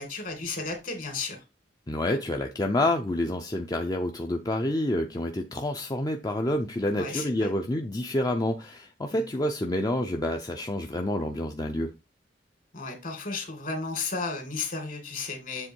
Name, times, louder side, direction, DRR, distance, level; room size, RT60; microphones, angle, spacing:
voice 1, 0.0-1.4 7.0-7.5 9.1-9.3 12.7-15.7, left 4 dB, 50° left, 2.3 m, -34 dB
voice 2, 1.9-11.9, left 1 dB, 20° left, 0.6 m, -28 dB
7.6 x 3.6 x 4.5 m
head